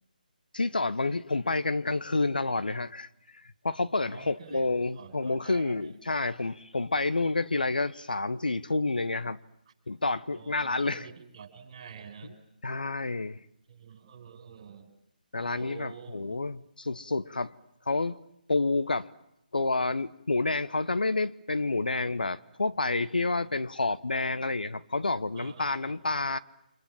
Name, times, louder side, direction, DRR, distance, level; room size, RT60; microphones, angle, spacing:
voice 1, 0.5-3.1 3.6-9.4 9.9-11.1 12.6-13.4 15.3-17.5 17.9-18.2 18.5-19.1 19.5-26.4, left 3 dB, 70° left, 1.1 m, -29 dB
voice 2, 4.0-5.9 10.3-12.3 13.7-14.9 15.4-16.4 25.3-26.0, right 7 dB, 40° right, 5.8 m, -48 dB
30.0 x 26.0 x 7.4 m
figure-of-eight pair, 145°, 5 cm